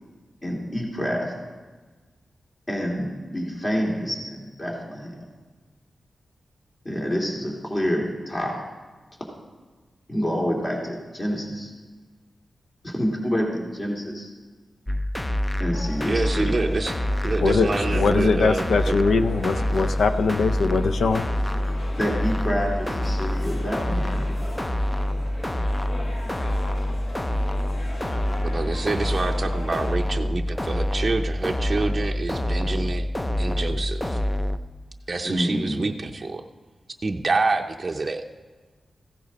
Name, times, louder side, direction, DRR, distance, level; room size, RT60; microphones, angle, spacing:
voice 1, 0.4-1.3 2.7-5.2 6.8-8.6 10.1-11.7 12.8-14.3 15.6-16.5 16.9-17.0 22.0-24.3 35.2-35.8, equal, 30° left, -2 dB, 2.5 m, -27 dB
sound 1, 14.9-34.6, left 1 dB, 15° left, 0.4 m, -26 dB
sound 2, 15.7-29.9, left 1 dB, 60° left, 1.8 m, -40 dB
voice 2, 16.1-16.9 17.2-18.9 28.4-33.1 33.4-34.2 35.1-36.4 37.0-38.2, right 3 dB, 35° right, 2 dB, 0.5 m, -27 dB
voice 3, 17.4-21.3, left 4 dB, 90° left, 9 dB, 0.5 m, -22 dB
15.0 x 10.0 x 4.1 m, 1.3 s
wide cardioid pair, 100°, 0 cm